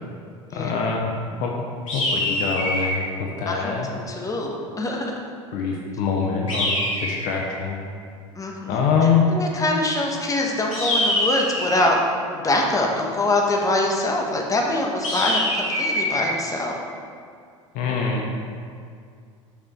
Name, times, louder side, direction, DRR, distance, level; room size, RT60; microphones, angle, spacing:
voice 1, 0.5-1.1 1.4-1.5 1.9-3.9 5.5-6.7 7.0-7.8 8.7-9.3 17.7-18.3, left 6 dB, 55° left, 0 dB, 1.0 m, -24 dB
sound 1, 1.9-3.0 6.5-7.5 10.7-12.0 15.0-16.3, left 1 dB, 80° left, 1.9 m, -24 dB
voice 2, 3.5-5.2 8.3-8.9 9.3-12.0 12.3-16.8, left 2 dB, 20° left, 0 dB, 1.3 m, -24 dB
6.3 x 6.1 x 4.5 m, 2.2 s
hypercardioid pair, 70°, 17 cm